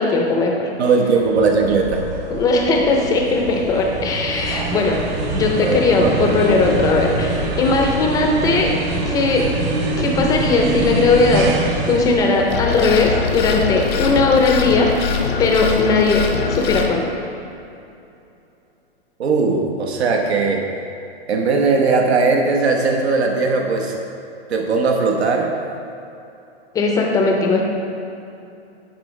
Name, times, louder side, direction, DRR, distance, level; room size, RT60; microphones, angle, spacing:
voice 1, 0.0-0.7 2.3-5.0 5.3-8.8 9.1-9.5 10.0-11.5 11.9-15.0 15.4-17.1 26.7-27.6, left 3 dB, 10° left, 1 dB, 0.5 m, -18 dB
voice 2, 0.8-2.1 5.6-6.1 19.2-20.6 21.3-24.0 24.5-25.5, right 4 dB, 80° right, 2 dB, 1.0 m, -18 dB
sound 1, 1.2-15.7, right 2 dB, 35° right, 1.0 m, -25 dB
sound 2, 12.5-16.9, left 6 dB, 80° left, 1.0 m, -23 dB
10.5 x 4.6 x 3.2 m, 2.7 s
hypercardioid pair, 140°, 32 cm